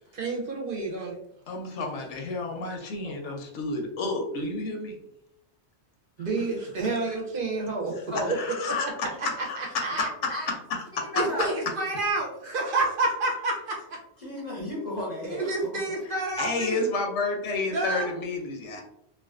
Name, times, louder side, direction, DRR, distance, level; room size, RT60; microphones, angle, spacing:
voice 1, 0.1-1.2 6.2-7.9 8.6-9.1 9.6-10.1 11.1-13.9 15.3-16.9 17.7-18.2, right 3 dB, 60° right, 0 dB, 0.6 m, -29 dB
voice 2, 1.5-5.0 8.3-8.9 9.4-9.6 16.4-18.8, left 3 dB, 80° left, 2 dB, 0.9 m, -30 dB
voice 3, 3.0-3.3 8.1-8.3 10.3-10.5 11.0-11.5 14.2-15.5, left 1 dB, 50° left, -4 dB, 0.6 m, -33 dB
2.4 x 2.2 x 2.3 m, 0.78 s
omnidirectional pair, 1.2 m